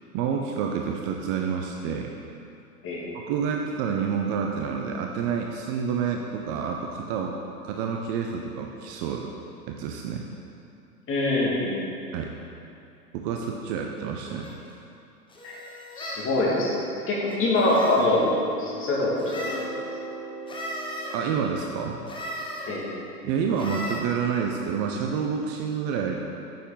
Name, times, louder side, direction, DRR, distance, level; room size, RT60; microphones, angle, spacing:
voice 1, 0.1-2.2 3.1-7.4 7.6-9.3 9.7-10.3 12.1-12.3 13.1-14.5 21.1-22.0 23.2-26.1, right 6 dB, 35° right, 2 dB, 0.6 m, -28 dB
voice 2, 11.1-11.8 15.4-15.6 16.0-16.8 17.1-18.2 18.6-19.5 22.7-22.8, left 2 dB, 25° left, -4 dB, 2.1 m, -24 dB
sound 1, 14.4-14.6 15.3-16.3 17.3-18.1 19.2-19.7 20.5-21.2 22.1-22.7 23.6-24.0, equal, 10° left, 1.2 m, -36 dB
sound 2, 17.9-23.4, left 1 dB, 85° left, 1.5 m, -39 dB
9.0 x 6.8 x 3.8 m, 2.7 s
figure-of-eight pair, 95°, 46 cm